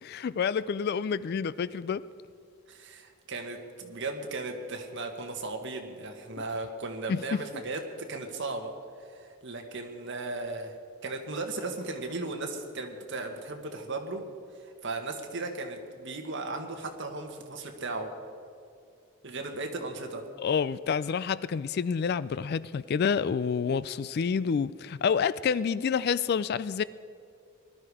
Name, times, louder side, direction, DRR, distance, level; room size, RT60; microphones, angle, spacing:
voice 1, 0.0-2.0 7.1-7.4 20.4-26.8, left 6 dB, 45° left, 0.3 m, -28 dB
voice 2, 2.7-8.7 9.0-10.7 11.0-14.2 14.6-18.1 19.2-20.2, right 3 dB, 55° right, 1.7 m, -36 dB
19.5 x 12.0 x 4.9 m
head